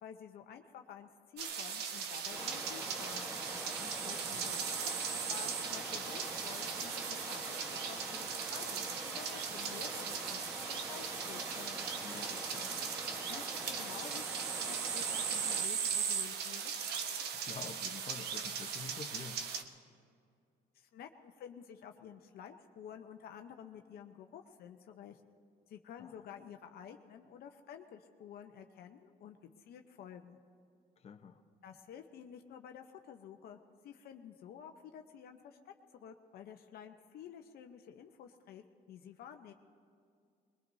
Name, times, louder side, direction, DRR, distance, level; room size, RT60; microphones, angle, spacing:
voice 1, 0.0-3.3 4.0-11.9 13.3-16.8 20.7-25.2 25.7-30.4 31.6-33.6 33.8-39.5, left 8 dB, 65° left, 5 dB, 0.9 m, -51 dB
sound 1, 1.4-19.6, right 7 dB, 75° right, 1.1 m, -38 dB
sound 2, 2.3-15.7, equal, 15° right, 1.3 m, -45 dB
voice 2, 3.7-4.4 12.0-12.7 17.3-19.4 26.0-26.2 31.0-31.4, left 6 dB, 40° left, 5 dB, 1.0 m, -49 dB
22.0 x 21.5 x 2.7 m, 2.3 s
cardioid pair, 110°, 17 cm